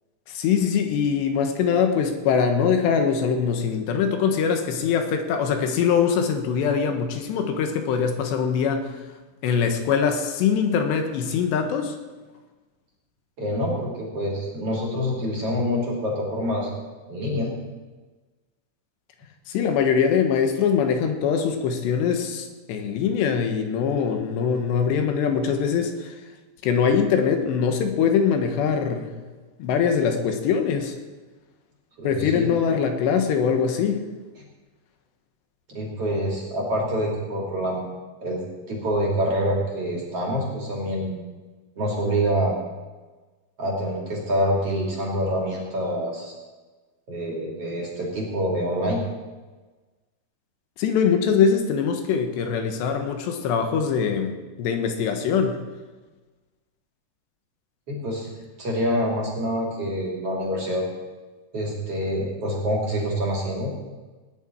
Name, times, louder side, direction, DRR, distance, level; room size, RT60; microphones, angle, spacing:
voice 1, 0.3-8.9 9.4-12.0 19.5-26.1 26.6-29.1 29.6-31.0 32.0-34.0 50.8-54.3 54.6-55.6, left 6 dB, 85° left, 5 dB, 3.4 m, -22 dB
voice 2, 13.4-16.7 17.1-17.5 32.0-32.6 34.4-34.5 35.7-37.8 38.2-41.2 41.8-42.6 43.6-46.3 47.1-49.0 57.9-58.3 58.6-60.9 61.5-63.7, equal, 40° right, -3 dB, 3.4 m, -26 dB
18.5 x 10.0 x 4.6 m, 1.3 s
omnidirectional pair, 5.0 m